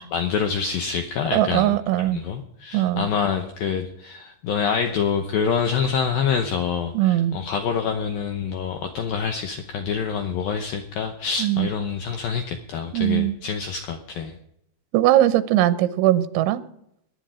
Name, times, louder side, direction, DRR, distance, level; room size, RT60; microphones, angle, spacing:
voice 1, 0.0-14.4, left 6 dB, 90° left, 5 dB, 2.0 m, -26 dB
voice 2, 1.3-2.2 2.7-3.1 6.9-7.4 11.4-11.7 12.9-13.4 14.9-16.6, right 14 dB, 85° right, 13 dB, 3.1 m, -20 dB
19.5 x 10.5 x 5.0 m, 0.76 s
omnidirectional pair, 5.4 m